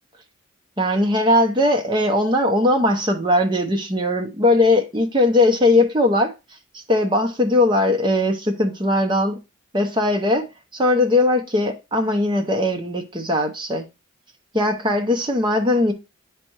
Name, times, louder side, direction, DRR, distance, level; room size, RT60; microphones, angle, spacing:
voice 1, 0.8-6.3 6.7-9.4 9.7-13.9 14.5-15.9, left 1 dB, 20° right, 0.9 m, -19 dB
9.7 x 3.4 x 3.0 m
head